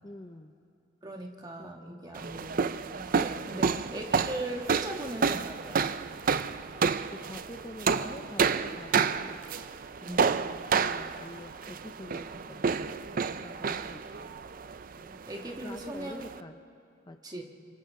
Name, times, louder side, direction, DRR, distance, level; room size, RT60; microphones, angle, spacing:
voice 1, 0.0-0.5 1.1-1.3 1.6-2.4 3.5-3.9 7.1-9.5 10.0-14.4 15.0-15.2 15.6-16.7 17.1-17.4, left 1 dB, 25° left, 6 dB, 0.7 m, -47 dB
voice 2, 1.0-5.9 10.0-10.4 15.2-16.3 17.2-17.4, right 1 dB, 20° right, 1 dB, 1.6 m, -39 dB
sound 1, 2.1-16.4, right 5 dB, 45° right, 0.5 m, -30 dB
29.5 x 25.5 x 3.8 m, 2.6 s
head